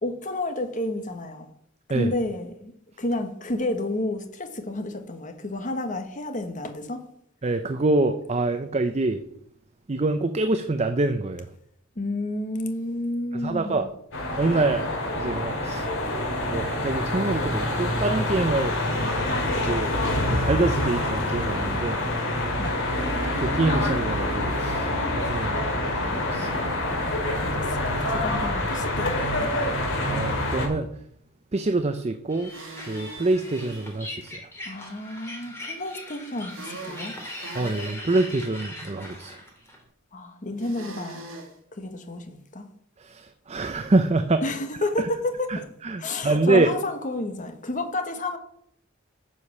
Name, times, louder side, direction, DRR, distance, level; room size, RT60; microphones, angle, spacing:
voice 1, 0.0-1.5 1.9-2.7 3.0-7.0 11.9-13.8 16.5-16.6 22.6-22.8 27.3-29.5 34.6-37.1 40.1-41.2 41.7-42.7 44.4-45.6 46.0-48.4, left 2 dB, 35° left, 1.2 m, -30 dB
voice 2, 7.4-9.2 9.9-11.5 13.3-13.9 14.4-14.9 15.1-15.9 16.5-18.8 19.5-19.9 20.3-22.0 23.4-25.6 26.0-26.5 30.1-31.0 31.5-32.5 32.8-34.5 37.5-39.4 43.0-44.4 45.0-45.1 45.5-46.7, right 2 dB, 30° right, 0.5 m, -25 dB
sound 1, 14.1-30.7, left 1 dB, 65° left, 2.5 m, -26 dB
sound 2, 32.3-39.8, left 1 dB, 10° left, 2.3 m, -40 dB
sound 3, 32.4-33.9 36.5-38.0 40.6-41.5, right 2 dB, 65° right, 2.7 m, -41 dB
9.8 x 5.0 x 7.1 m
head